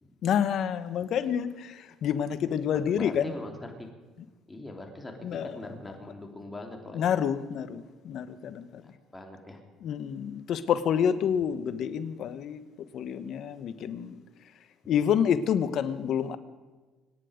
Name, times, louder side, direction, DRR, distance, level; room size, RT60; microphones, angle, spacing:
voice 1, 0.2-3.3 5.2-5.6 6.9-8.8 9.8-12.6 12.9-14.2 14.9-16.4, left 8 dB, 60° left, 13 dB, 1.1 m, -28 dB
voice 2, 2.9-3.9 4.5-7.1 8.8-9.6, left 1 dB, 15° left, 3 dB, 3.2 m, -42 dB
25.5 x 10.0 x 5.2 m, 1.3 s
supercardioid pair, 90°, 0 cm